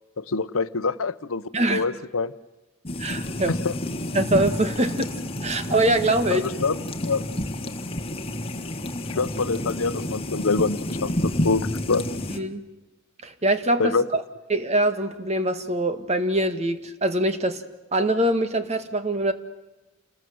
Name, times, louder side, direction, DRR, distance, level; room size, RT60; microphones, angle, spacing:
voice 1, 0.2-1.4 1.7-2.3 3.5-3.7 6.3-7.3 9.1-12.1 13.8-14.0, left 4 dB, 80° left, 14 dB, 0.8 m, -25 dB
sound 1, 2.8-12.4, left 1 dB, 25° left, 1.5 m, -30 dB
voice 2, 3.0-3.6 4.1-5.1 5.4-6.4 12.3-12.6 13.2-14.2 14.5-17.6 17.9-19.3, right 1 dB, 30° right, 9 dB, 1.7 m, -23 dB
29.0 x 20.0 x 7.9 m, 1.1 s
head